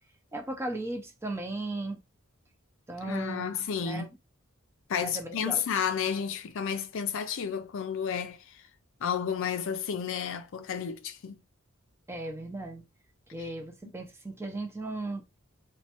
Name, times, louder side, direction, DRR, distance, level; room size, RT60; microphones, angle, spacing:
voice 1, 0.3-2.0 2.9-3.6 3.8-4.1 5.0-5.6 12.1-12.8 13.3-15.2, right 2 dB, 10° right, 0.5 m, -36 dB
voice 2, 3.0-4.1 4.9-8.6 9.0-11.4, left 7 dB, 65° left, 0.4 m, -32 dB
3.1 x 2.2 x 2.8 m
head